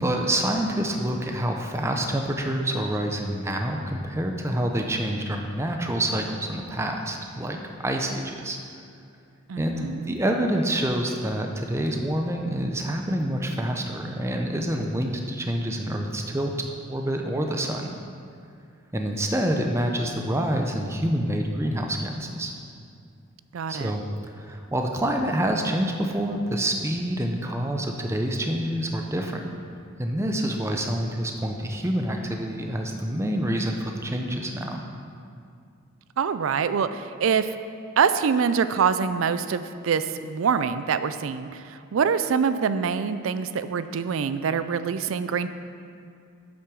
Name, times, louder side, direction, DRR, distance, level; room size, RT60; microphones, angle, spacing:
voice 1, 0.0-7.6 7.8-8.6 9.6-9.8 10.1-16.5 16.9-17.9 18.9-22.5 23.7-29.4 30.0-34.8, right 1 dB, 15° right, 3 dB, 0.5 m, -27 dB
voice 2, 9.5-10.2 23.5-23.9 36.2-37.5 38.0-45.5, right 6 dB, 75° right, 12 dB, 0.4 m, -25 dB
8.3 x 6.1 x 6.1 m, 2.4 s
head